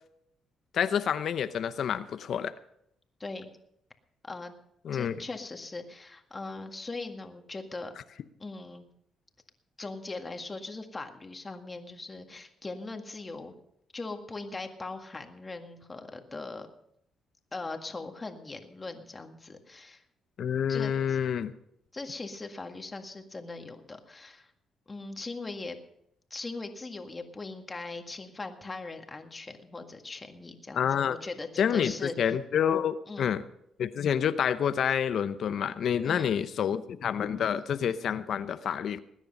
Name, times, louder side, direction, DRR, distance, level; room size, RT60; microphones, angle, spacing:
voice 1, 0.7-2.5 4.8-5.2 20.4-21.5 30.8-31.2 31.6-33.4 33.8-39.0, left 8 dB, 65° left, 12 dB, 0.8 m, -28 dB
voice 2, 4.9-7.9 8.4-8.9 9.8-13.5 13.9-16.7 17.5-20.0 20.7-21.2 21.9-24.5 24.9-25.8 26.3-32.4 33.1-33.4 36.0-36.4, left 3 dB, 25° left, 5 dB, 1.8 m, -40 dB
19.5 x 9.9 x 5.4 m, 0.74 s
cardioid pair, 90°, 0 cm